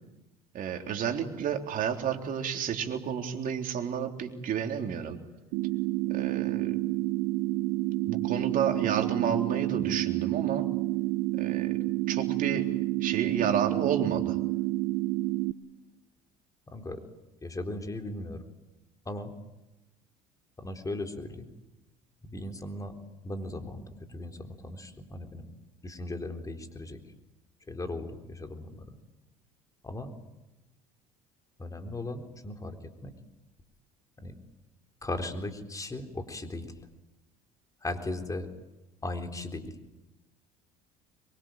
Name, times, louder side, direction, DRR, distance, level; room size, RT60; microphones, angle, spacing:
voice 1, 0.5-5.2 6.1-6.8 8.1-10.7 11.4-11.7 12.1-12.7 13.0-14.4, right 8 dB, 50° right, 4 dB, 3.6 m, -31 dB
sound 1, 5.5-15.5, right 18 dB, 70° right, 0.9 m, -29 dB
voice 2, 16.7-17.0 17.4-18.4 19.1-19.3 20.6-21.5 22.2-22.9 23.2-25.5 25.8-27.0 27.7-29.0 29.8-30.1 31.6-33.2 34.2-34.4 35.0-36.9 37.8-38.5 39.0-39.8, left 2 dB, 20° left, 6 dB, 3.9 m, -37 dB
24.5 x 23.5 x 9.0 m, 0.99 s
hypercardioid pair, 65°, 18 cm